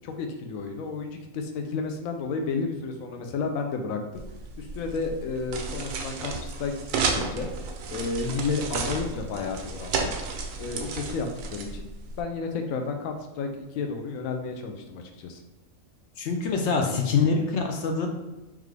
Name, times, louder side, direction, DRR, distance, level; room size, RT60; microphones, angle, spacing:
voice 1, 0.0-4.2 4.6-7.5 7.9-10.1 10.6-11.9 12.2-15.4, left 4 dB, 85° left, 4 dB, 1.0 m, -32 dB
sound 1, 4.2-12.2, right 4 dB, 80° right, 1.0 m, -32 dB
voice 2, 16.2-18.1, left 5 dB, 65° left, 3 dB, 0.8 m, -25 dB
3.6 x 3.2 x 3.3 m, 1.1 s
omnidirectional pair, 1.4 m